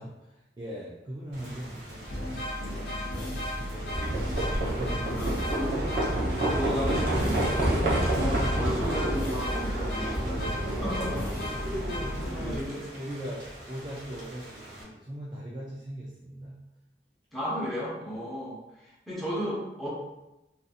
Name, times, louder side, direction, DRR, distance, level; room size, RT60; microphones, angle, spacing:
voice 1, 0.0-2.1 2.6-2.9 3.2-4.5 4.7-5.2 10.7-11.0 11.8-16.6, equal, 25° right, -6 dB, 0.3 m, -40 dB
Thunder / Rain, 1.3-14.8, right 1 dB, 90° right, 1.0 m, -42 dB
sound 1, 2.0-12.7, left 1 dB, 60° left, 0.6 m, -35 dB
Livestock farm animals working animals, 3.9-12.6, right 1 dB, 60° right, 0.7 m, -29 dB
voice 2, 5.0-5.8 6.5-11.5 12.4-12.8 17.3-19.9, equal, ahead, -8 dB, 0.7 m, -35 dB
2.6 x 2.5 x 2.4 m, 0.95 s
head